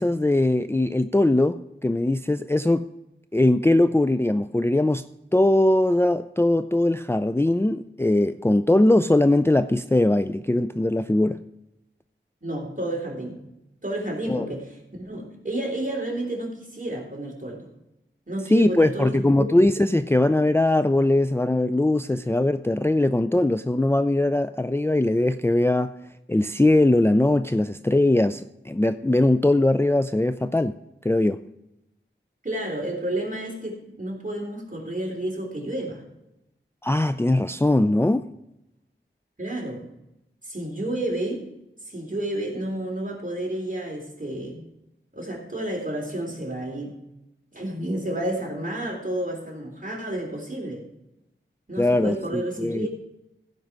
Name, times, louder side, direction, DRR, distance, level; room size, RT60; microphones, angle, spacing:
voice 1, 0.0-2.9 3.3-5.0 5.3-11.4 14.3-14.5 18.5-25.9 26.3-30.8 31.0-31.4 36.8-38.3 51.8-52.9, left 1 dB, 10° left, 11 dB, 0.4 m, -21 dB
voice 2, 12.4-13.4 13.8-17.7 18.3-19.2 32.4-36.0 39.4-39.8 40.4-41.5 41.9-44.6 45.1-46.9 47.5-50.8 51.7-52.9, right 1 dB, 40° right, -1 dB, 3.7 m, -31 dB
16.0 x 5.4 x 6.0 m, 0.89 s
wide cardioid pair, 40°, 21 cm